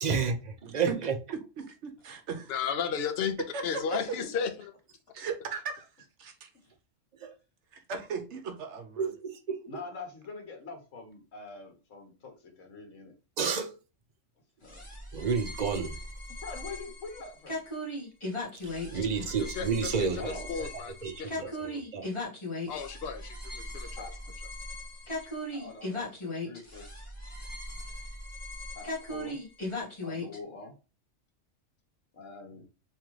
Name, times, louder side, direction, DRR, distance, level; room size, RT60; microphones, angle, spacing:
voice 1, 0.0-1.2 7.2-7.3 9.0-9.6 13.4-13.7 15.1-16.0 18.9-20.7 21.0-21.5 21.9-22.0, right 5 dB, 45° right, 0.6 m, -30 dB
voice 2, 0.6-1.0 1.3-2.5 3.5-4.2 5.1-6.5 7.7-9.1, right 5 dB, 70° right, 0.9 m, -38 dB
voice 3, 2.5-4.7 19.4-20.9 21.2-21.3 21.6-21.8 22.7-24.1, left 7 dB, 60° left, 0.8 m, -34 dB
voice 4, 9.7-13.1 14.6-14.8 16.4-17.6 20.2-20.5 24.0-24.1 25.5-26.9 28.7-29.4 30.0-30.7 32.1-32.6, left 3 dB, 80° left, 1.6 m, -44 dB
sound 1, 14.7-30.4, left 1 dB, 25° left, 1.6 m, -38 dB
3.6 x 3.3 x 3.0 m
omnidirectional pair, 1.3 m